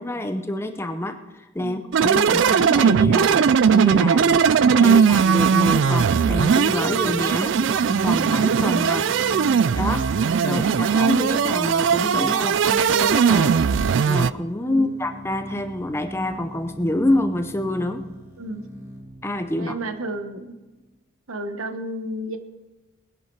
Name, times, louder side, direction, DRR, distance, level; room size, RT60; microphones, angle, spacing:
voice 1, 0.0-9.1 9.8-10.1 10.4-13.6 14.1-18.0 19.2-19.7, left 1 dB, 10° left, 8 dB, 0.6 m, -27 dB
sound 1, 1.9-14.3, right 6 dB, 60° right, 0.3 m, -19 dB
sound 2, 3.2-20.8, equal, 15° right, 2.5 m, -39 dB
voice 2, 10.4-10.7 14.7-14.9 18.4-18.6 19.6-20.5 21.3-22.4, right 1 dB, 80° right, 8 dB, 1.1 m, -32 dB
20.5 x 10.5 x 4.7 m, 1.2 s
head